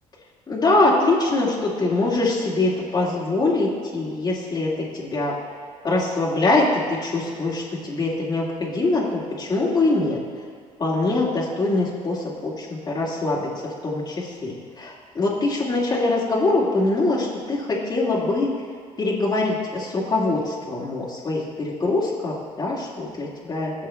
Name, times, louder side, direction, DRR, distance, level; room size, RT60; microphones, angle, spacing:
voice 1, 0.5-5.3 5.8-10.2 10.8-13.5 13.8-18.5 19.0-23.7, left 2 dB, 30° left, -7 dB, 2.0 m, -23 dB
15.0 x 6.8 x 2.3 m, 2.1 s
cardioid pair, 90°, 14 cm